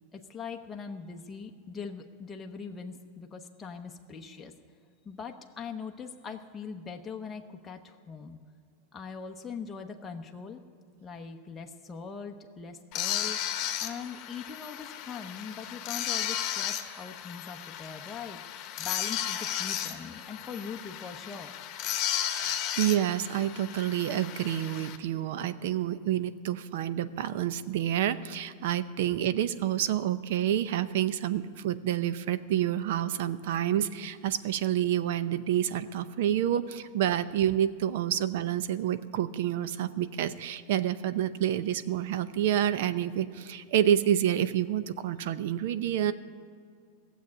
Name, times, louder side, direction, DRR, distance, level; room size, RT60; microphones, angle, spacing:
voice 1, 0.1-4.5 5.0-8.4 8.9-10.6 11.0-13.4 13.8-21.6, left 5 dB, 15° left, 2 dB, 0.8 m, -41 dB
sound 1, 12.9-25.0, left 11 dB, 45° left, 1.1 m, -34 dB
voice 2, 22.3-46.1, right 11 dB, 70° right, 14 dB, 0.6 m, -28 dB
15.0 x 7.5 x 9.7 m, 2.2 s
supercardioid pair, 135°, 0 cm